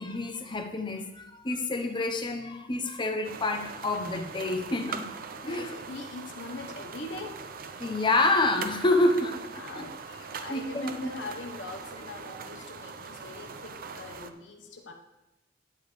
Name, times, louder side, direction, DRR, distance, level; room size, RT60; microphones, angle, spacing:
voice 1, 0.0-5.1 5.4-5.7 7.8-9.8 10.5-11.1, left 2 dB, 25° left, 5 dB, 0.8 m, -28 dB
sound 1, 3.2-14.3, right 5 dB, 50° right, 0.6 m, -41 dB
voice 2, 5.4-7.4 9.6-14.9, left 3 dB, 80° left, 3 dB, 1.1 m, -42 dB
10.5 x 8.7 x 3.2 m, 1.0 s
head